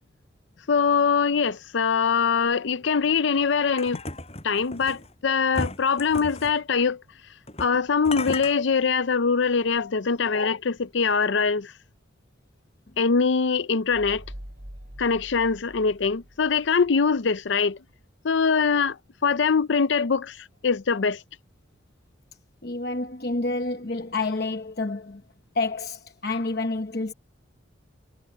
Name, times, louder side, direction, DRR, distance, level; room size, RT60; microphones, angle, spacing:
voice 1, 0.7-4.0 4.4-7.0 7.6-11.7 13.0-14.2 15.0-17.8 18.2-18.9 19.2-20.3 20.6-21.2, left 5 dB, 70° left, 0.6 m, -23 dB
sound 1, 3.8-5.1 5.5-6.6 7.5-7.8 8.0-8.5, left 2 dB, 30° left, 7.6 m, -34 dB
sound 2, 13.9-17.3, equal, 50° right, 4.1 m, -44 dB
voice 2, 22.6-25.2 25.5-27.1, left 3 dB, 50° left, 1.0 m, -28 dB
head